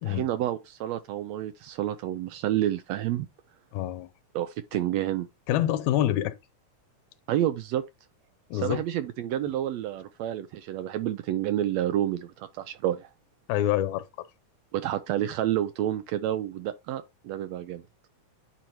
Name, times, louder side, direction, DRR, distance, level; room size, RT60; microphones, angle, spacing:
voice 1, 0.0-3.3 4.3-5.3 7.3-7.8 8.5-13.1 14.7-17.8, right 12 dB, 80° right, 1.6 m, -29 dB
voice 2, 3.7-4.1 5.5-6.4 8.5-8.8 13.5-14.0, left 12 dB, 80° left, 2.1 m, -26 dB
10.5 x 4.5 x 2.6 m
omnidirectional pair, 3.5 m